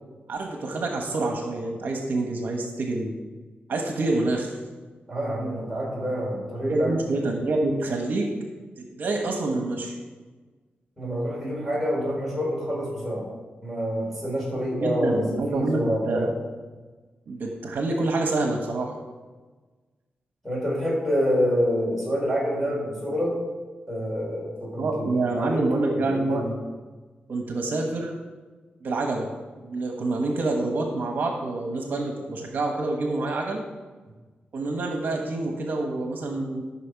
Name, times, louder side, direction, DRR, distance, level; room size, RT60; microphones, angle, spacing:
voice 1, 0.3-3.1 3.7-4.5 6.7-8.3 8.8-9.9 14.8-16.3 17.3-18.9 24.8-26.5 27.3-28.1 28.8-29.3 29.6-33.6 34.5-36.6, right 2 dB, 60° right, 2 dB, 1.2 m, -27 dB
voice 2, 5.1-7.0 11.0-13.3 13.6-16.4 20.4-23.4 23.9-26.5, equal, ahead, -4 dB, 3.7 m, -27 dB
13.0 x 6.1 x 4.7 m, 1.3 s
wide cardioid pair, 145°, 4 cm